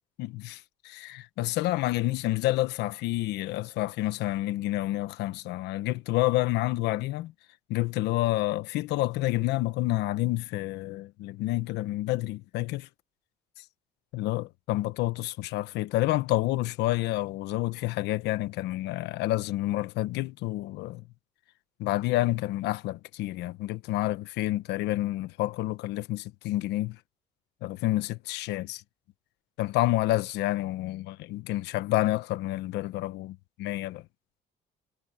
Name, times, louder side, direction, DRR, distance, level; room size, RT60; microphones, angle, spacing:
voice 1, 0.2-7.3 7.7-12.9 14.1-21.0 21.8-27.0 27.6-28.8 29.6-34.0, left 17 dB, 85° left, 1.1 m, -29 dB
cardioid pair, 110°, 17 cm